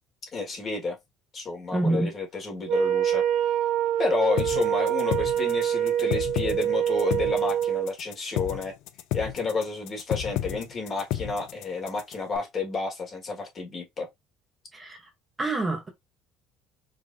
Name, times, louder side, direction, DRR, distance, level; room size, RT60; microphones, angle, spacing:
voice 1, 0.3-1.0 1.3-3.2 4.0-8.7 9.1-14.1, left 4 dB, 30° left, 1.6 m, -30 dB
voice 2, 1.7-2.1 14.7-15.0 15.4-15.9, right 2 dB, 15° right, 0.8 m, -26 dB
Wind instrument woodwind instrument, 2.7-7.9, right 10 dB, 65° right, 0.8 m, -25 dB
sound 1, 4.4-12.4, left 13 dB, 70° left, 0.5 m, -32 dB
4.8 x 2.8 x 2.6 m
cardioid pair, 155°, 0 cm